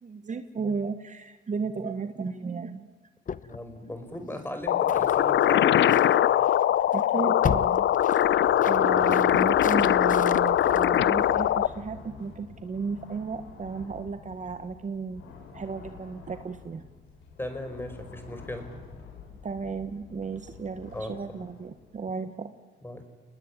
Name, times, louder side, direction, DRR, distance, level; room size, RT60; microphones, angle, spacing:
voice 1, 0.0-2.9 6.9-7.9 8.1-15.2 15.5-16.8 19.4-22.5, right 5 dB, 40° right, 9 dB, 1.6 m, -34 dB
sound 1, 3.3-11.7, left 7 dB, 40° left, 0.9 m, -38 dB
voice 2, 3.4-6.2 17.4-18.7 20.9-21.2 22.8-23.0, left 1 dB, 10° left, 7 dB, 5.5 m, -37 dB
sound 2, 4.7-11.7, left 11 dB, 65° left, 0.9 m, -22 dB
sound 3, 5.0-6.9 7.8-22.0, left 5 dB, 85° left, 6.2 m, -47 dB
29.5 x 19.5 x 9.9 m, 1.3 s
cardioid pair, 90°, 20 cm